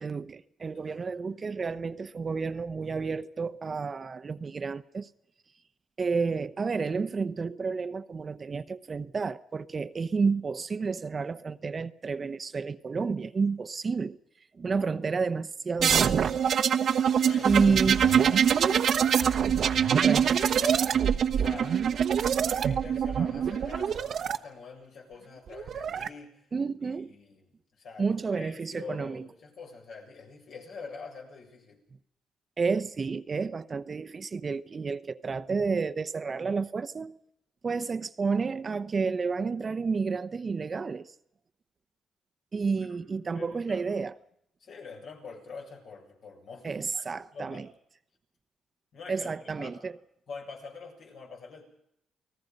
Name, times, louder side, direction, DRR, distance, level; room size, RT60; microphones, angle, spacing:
voice 1, 0.0-5.1 6.0-14.2 14.6-16.4 17.4-18.1 19.9-20.4 26.5-27.1 28.0-29.3 32.6-37.2 37.6-41.1 42.5-44.1 46.6-47.7 49.1-49.9, right 4 dB, 35° right, 0.9 m, -30 dB
sound 1, 15.8-24.4 25.5-26.1, right 8 dB, 60° right, 1.0 m, -24 dB
voice 2, 17.1-21.9 22.4-26.5 26.8-27.5 27.8-31.8 42.8-43.0 43.3-44.0 44.6-47.1 47.3-47.7 48.9-49.9 50.3-51.6, left 4 dB, 70° left, 7.3 m, -45 dB
29.5 x 19.0 x 5.4 m
cardioid pair, 90°, 0 cm